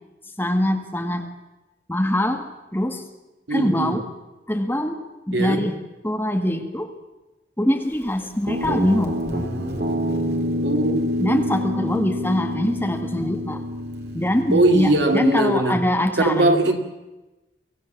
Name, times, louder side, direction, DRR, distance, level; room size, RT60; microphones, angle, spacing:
voice 1, 0.4-1.3 1.9-2.5 2.7-3.0 3.5-4.0 4.5-5.7 6.0-6.9 7.6-9.2 11.2-13.6 14.1-16.7, left 1 dB, 10° left, 5 dB, 1.7 m, -23 dB
voice 2, 3.5-4.0 5.3-5.7 10.6-11.0 14.5-15.8 16.2-16.8, right 2 dB, 90° right, 5 dB, 2.4 m, -20 dB
Guitar, 8.5-15.0, equal, 65° right, 2.9 m, -27 dB
24.0 x 16.5 x 7.3 m, 1.1 s
head